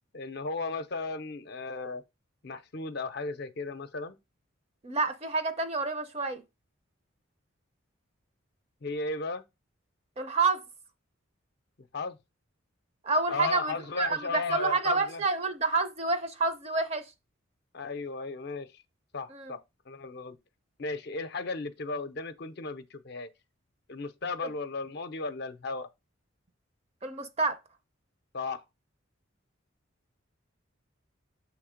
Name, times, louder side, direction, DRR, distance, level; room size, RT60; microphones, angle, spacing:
voice 1, 0.1-2.0 2.4-4.2 8.8-9.4 11.9-12.2 13.3-15.2 17.7-18.8 19.1-19.6 19.9-20.4 20.8-23.3 23.9-25.9 28.3-28.6, left 3 dB, 50° left, 0.5 m, -35 dB
voice 2, 4.8-6.4 10.2-10.6 13.0-17.1 19.3-19.5 27.0-27.6, right 3 dB, 30° right, 0.6 m, -28 dB
6.6 x 3.2 x 5.0 m
head